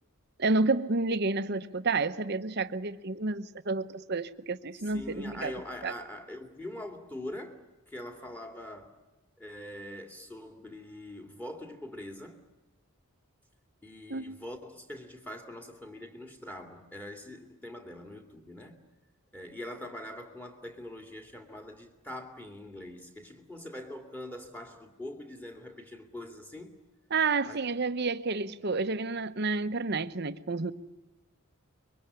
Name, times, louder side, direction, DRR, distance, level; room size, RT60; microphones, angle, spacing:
voice 1, 0.4-5.5 5.8-5.9 14.1-14.4 27.1-30.7, right 3 dB, 50° right, 0.9 m, -30 dB
voice 2, 4.8-7.6 7.9-8.9 9.4-12.4 13.8-18.8 19.3-26.7 27.5-27.6, left 1 dB, 10° left, 2.4 m, -43 dB
24.0 x 23.0 x 9.9 m
head